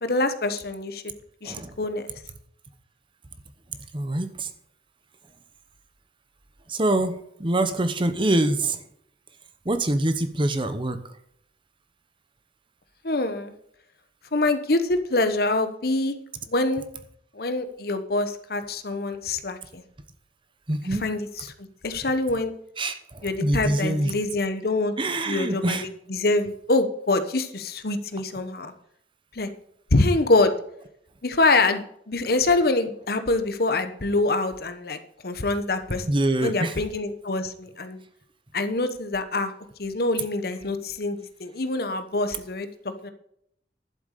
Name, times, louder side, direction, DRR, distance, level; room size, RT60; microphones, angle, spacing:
voice 1, 0.0-1.1 1.4-2.1 13.0-13.5 14.3-16.1 16.5-16.8 17.3-19.8 21.0-21.5 21.8-22.5 23.2-24.9 25.3-28.7 29.3-29.5 29.9-30.5 31.2-36.1 36.4-38.0 38.5-39.5 39.8-43.1, left 2 dB, 60° left, 9 dB, 1.1 m, -25 dB
voice 2, 3.9-4.5 6.7-8.8 9.6-11.0 20.7-21.0 22.8-24.1 25.0-25.9 36.1-36.8, right 1 dB, 30° right, 11 dB, 0.9 m, -25 dB
11.5 x 7.8 x 6.7 m, 0.70 s
head